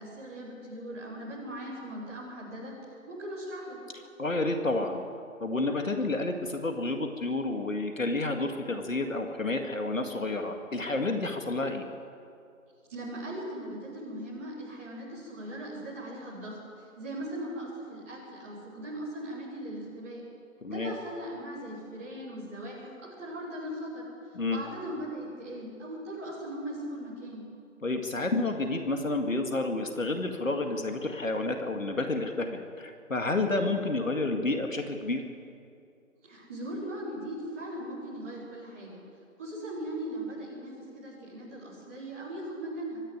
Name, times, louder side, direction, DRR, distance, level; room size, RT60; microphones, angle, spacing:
voice 1, 0.0-3.8 12.9-20.2 20.7-27.4 36.2-39.0 39.4-43.0, right 1 dB, 10° right, -8 dB, 3.3 m, -39 dB
voice 2, 4.2-5.0 5.4-11.8 20.6-20.9 24.3-24.6 27.8-35.2, left 2 dB, 65° left, 4 dB, 2.2 m, -30 dB
24.5 x 11.5 x 9.8 m, 2.4 s
figure-of-eight pair, 170°, 42 cm